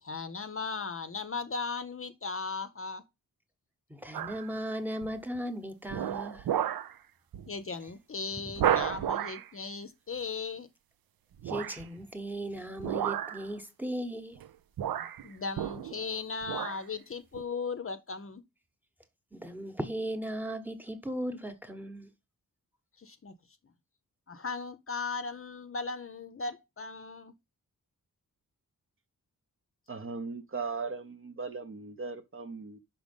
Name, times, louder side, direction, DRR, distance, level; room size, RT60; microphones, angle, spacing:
voice 1, 0.0-3.0 7.5-10.7 15.2-18.4 23.0-23.3 24.3-27.3, left 4 dB, 40° left, 0.6 m, -37 dB
voice 2, 3.9-6.6 11.4-14.4 19.3-22.1, right 1 dB, 5° right, 1.0 m, -37 dB
sound 1, 4.1-4.5 5.0-5.4 5.9-6.9 7.3-7.5 7.9-8.0 8.6-9.5 11.4-11.9 12.8-13.5 14.3-14.5 14.8-16.1 16.4-16.8 17.3-17.4, right 10 dB, 85° right, 0.5 m, -32 dB
voice 3, 29.9-32.8, right 4 dB, 35° right, 0.7 m, -38 dB
5.8 x 5.2 x 5.2 m
wide cardioid pair, 150°, 35 cm